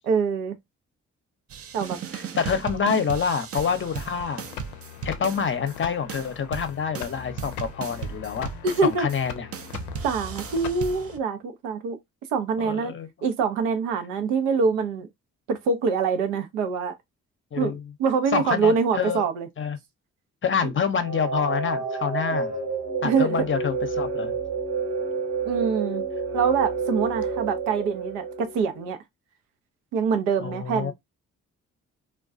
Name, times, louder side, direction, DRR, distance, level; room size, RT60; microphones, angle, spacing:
voice 1, 0.1-0.6 1.7-2.0 8.6-9.1 10.0-12.0 12.3-12.9 13.2-15.1 15.5-16.9 17.6-19.5 23.0-23.5 25.4-26.0 26.3-29.0 29.9-30.9, right 5 dB, 80° right, 0.6 m, -25 dB
sound 1, 1.5-5.8 6.1-9.2 9.5-11.2, right 7 dB, 35° right, 0.5 m, -36 dB
voice 2, 2.4-4.4 5.0-8.5 8.8-9.5 12.6-13.1 17.5-17.8 18.3-19.3 19.6-19.8 20.4-22.5 23.0-24.3 30.4-30.9, left 6 dB, 30° left, 0.7 m, -27 dB
sound 2, 3.6-11.2, left 10 dB, 75° left, 0.5 m, -40 dB
sound 3, 21.0-28.9, right 5 dB, 60° right, 1.1 m, -29 dB
2.3 x 2.2 x 2.5 m
hypercardioid pair, 40°, 40 cm